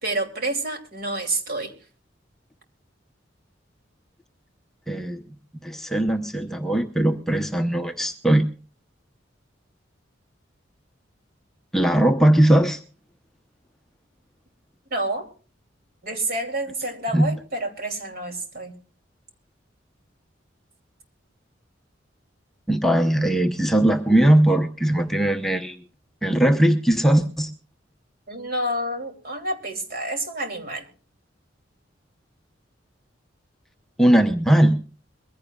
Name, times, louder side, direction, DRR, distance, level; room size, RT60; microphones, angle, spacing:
voice 1, 0.0-1.7 14.9-15.3 16.0-18.8 28.3-30.8, right 1 dB, 50° right, 4 dB, 2.8 m, -28 dB
voice 2, 4.9-5.3 5.6-8.5 11.7-12.8 17.1-17.3 22.7-25.8 26.2-27.5 34.0-34.8, right 1 dB, ahead, 4 dB, 0.8 m, -19 dB
22.5 x 15.5 x 2.4 m, 0.38 s
head